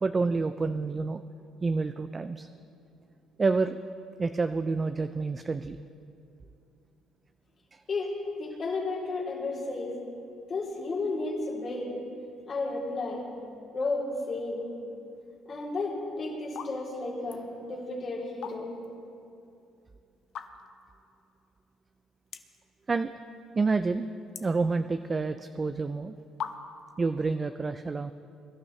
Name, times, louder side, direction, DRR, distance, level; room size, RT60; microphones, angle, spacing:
voice 1, 0.0-1.2 1.6-2.5 3.4-3.8 4.2-5.8 7.7-7.8 22.9-23.1 23.5-24.1 24.4-26.2 27.0-28.1, right 4 dB, 25° right, 10 dB, 0.4 m, -28 dB
voice 2, 7.9-10.0 10.5-12.0 12.5-13.3 13.7-14.7 15.4-18.7, left 3 dB, 45° left, -3 dB, 3.2 m, -33 dB
sound 1, 15.7-16.0 16.4-16.8 17.1-17.4 18.2-18.9 19.3-19.4 20.2-20.8 21.3-21.4 21.6-21.7 22.3-22.7 23.0-23.5 23.8-25.2 25.9-26.0 26.4-26.9, left 8 dB, 65° left, 0.8 m, -40 dB
22.5 x 11.5 x 3.2 m, 2.7 s
cardioid pair, 95°, 0 cm